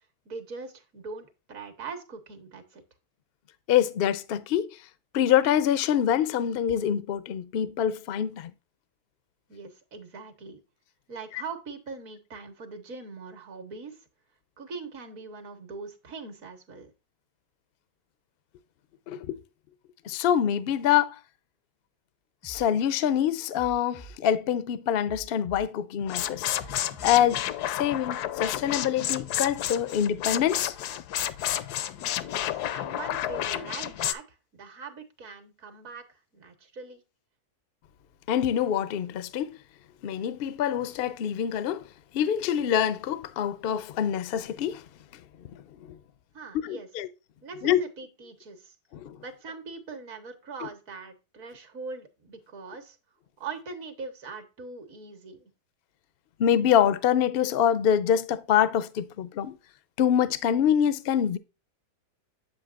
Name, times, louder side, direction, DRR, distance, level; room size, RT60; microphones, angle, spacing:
voice 1, 0.2-2.8 9.5-10.6 11.1-14.0 14.6-16.9 32.3-34.2 34.5-37.0 46.3-46.9 47.4-48.7 49.2-53.0 53.4-55.5, right 4 dB, 60° right, 1.6 m, -41 dB
voice 2, 3.7-4.7 5.1-8.5 19.1-19.3 20.1-21.2 22.4-26.5 27.0-30.7 38.3-39.6 40.0-41.9 42.1-44.8 45.5-45.6 46.6-47.1 47.6-47.8 48.9-49.2 56.4-59.6 60.0-61.4, left 9 dB, 65° left, 0.5 m, -25 dB
sound 1, 22.4-22.6 23.5-24.1 25.0-25.6 26.5-27.1, right 1 dB, 25° right, 0.5 m, -46 dB
sound 2, 26.0-34.1, left 12 dB, 85° left, 1.1 m, -31 dB
8.1 x 7.6 x 2.4 m
omnidirectional pair, 1.7 m